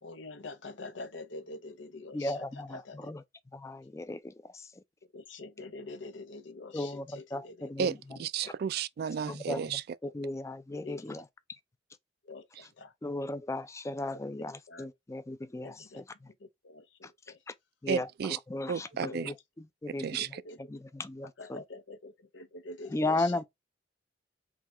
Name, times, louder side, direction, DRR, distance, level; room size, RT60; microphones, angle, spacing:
voice 1, 0.0-3.1 5.1-7.7 8.4-8.5 9.6-9.7 10.0-10.1 10.7-11.3 12.2-12.9 14.7-14.9 15.6-17.4 19.0-19.3 20.2-20.7 21.2-23.4, left 3 dB, 90° left, 0.7 m, -46 dB
voice 2, 2.1-3.2 3.5-4.7 6.7-8.0 9.3-11.2 13.0-16.0 17.0-17.1 17.5-17.6 17.8-19.3 19.8-21.6 22.9-23.4, left 2 dB, 15° left, 0.4 m, -36 dB
voice 3, 8.2-9.8 17.9-18.4 18.7-19.3 20.0-20.4, right 7 dB, 55° right, 0.3 m, -32 dB
3.7 x 2.8 x 4.2 m
head